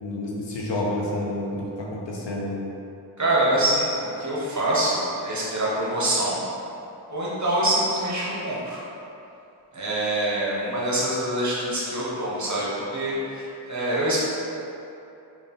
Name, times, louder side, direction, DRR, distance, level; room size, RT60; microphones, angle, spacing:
voice 1, 0.0-2.6, left 1 dB, 80° left, -3 dB, 0.7 m, -29 dB
voice 2, 3.2-6.4 7.1-8.8 9.7-14.2, right 1 dB, 40° right, -7 dB, 1.0 m, -25 dB
3.7 x 2.5 x 3.6 m, 2.8 s
wide cardioid pair, 70°, 43 cm